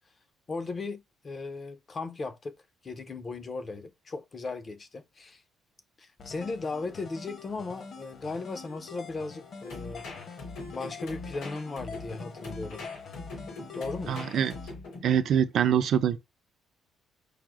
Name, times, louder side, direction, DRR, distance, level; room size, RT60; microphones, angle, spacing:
voice 1, 0.5-2.5 2.8-5.4 6.0-10.1 10.7-12.9 13.7-14.3, left 3 dB, 30° left, 0.5 m, -37 dB
sound 1, 6.2-14.7, left 5 dB, 45° left, 0.9 m, -45 dB
sound 2, 9.7-15.2, left 3 dB, 80° left, 2.8 m, -42 dB
voice 2, 14.1-14.5 15.0-16.2, right 9 dB, 55° right, 0.4 m, -24 dB
4.8 x 2.0 x 4.7 m
cardioid pair, 145°, 0 cm